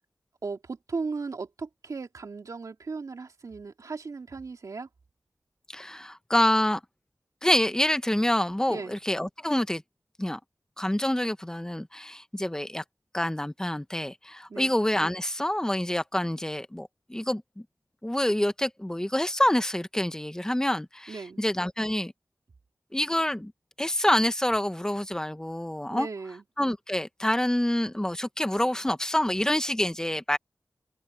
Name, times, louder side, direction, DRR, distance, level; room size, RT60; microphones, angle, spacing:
voice 1, 0.4-4.9 8.7-9.0 14.5-14.7 21.1-21.4 25.9-26.4, right 4 dB, 75° right, 2.8 m, -36 dB
voice 2, 5.7-6.8 7.4-9.8 10.2-10.4 10.8-12.8 13.1-17.4 18.0-22.1 22.9-23.5 23.8-26.1 26.6-30.4, left 1 dB, 10° left, 1.3 m, -27 dB
open air
wide cardioid pair, 95°, 6 cm